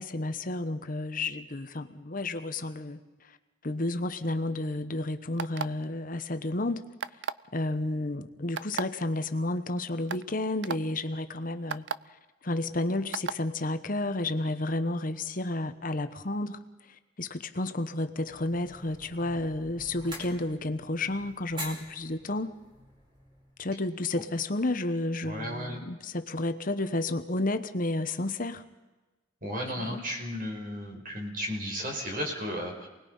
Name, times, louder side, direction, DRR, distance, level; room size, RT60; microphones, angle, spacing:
voice 1, 0.0-3.4 3.6-6.8 7.5-11.8 12.4-16.6 16.9-22.5 23.6-28.6 29.8-30.1, left 2 dB, 45° left, 9 dB, 1.2 m, -31 dB
sound 1, 5.4-5.8 7.0-7.4 8.6-8.8 9.6-9.7 10.1-10.2 10.6-10.8 11.7-11.9 13.1-13.4, right 6 dB, 70° right, 0.6 m, -32 dB
sound 2, 18.2-23.6, equal, 25° right, 5.2 m, -46 dB
voice 2, 25.2-25.8 29.4-32.9, equal, 50° right, 1 dB, 5.4 m, -34 dB
28.0 x 20.0 x 5.6 m, 1.2 s
head